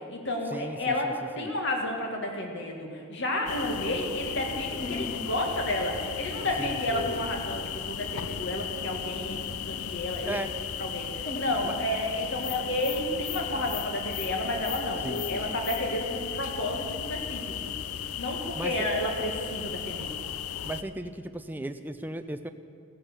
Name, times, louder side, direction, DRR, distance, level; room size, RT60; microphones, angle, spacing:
voice 1, 0.0-9.4 9.7-10.4 10.8-17.4 17.6-17.7 18.2-20.1, left 1 dB, 55° left, 1 dB, 2.0 m, -31 dB
voice 2, 0.5-1.5 6.6-6.8 7.2-7.3 10.2-10.5 11.6-11.7 15.0-15.6 18.5-18.7 20.6-22.5, right 1 dB, 10° right, 8 dB, 0.4 m, -36 dB
sound 1, 3.5-20.8, left 8 dB, 85° left, 0.6 m, -35 dB
Dog, 4.6-15.5, left 2 dB, 40° left, 1.0 m, -45 dB
15.5 x 10.5 x 7.3 m, 2.3 s
head